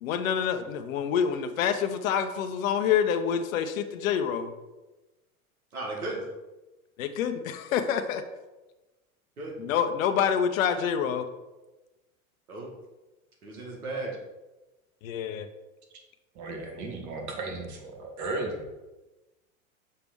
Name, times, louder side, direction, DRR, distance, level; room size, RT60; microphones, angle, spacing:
voice 1, 0.0-4.5 7.0-8.2 9.6-11.3 15.0-15.5, left 8 dB, 65° left, 8 dB, 0.8 m, -27 dB
voice 2, 5.7-6.3 9.4-9.6 12.5-12.7 13.4-14.2, right 2 dB, 90° right, -1 dB, 2.1 m, -35 dB
voice 3, 16.4-18.6, right 2 dB, 40° right, 2 dB, 1.8 m, -35 dB
6.6 x 3.4 x 6.1 m, 1.1 s
hypercardioid pair, 100°, 43 cm